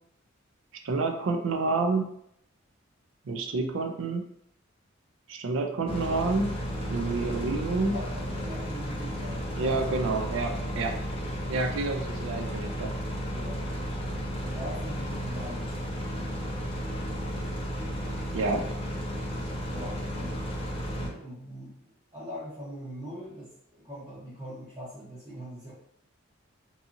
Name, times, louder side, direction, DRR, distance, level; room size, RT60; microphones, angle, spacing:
voice 1, 0.8-2.0 3.3-4.2 5.3-6.6 6.9-8.0 9.6-10.9 11.5-12.9 18.3-18.6, right 3 dB, 65° right, 4 dB, 0.3 m, -28 dB
sound 1, 5.9-21.1, equal, 25° left, 0.5 m, -33 dB
voice 2, 7.9-10.0 13.3-13.7 14.4-15.8 18.5-18.7 19.7-20.4 20.9-25.7, equal, 20° right, -10 dB, 0.8 m, -42 dB
2.7 x 2.6 x 2.5 m, 0.72 s
head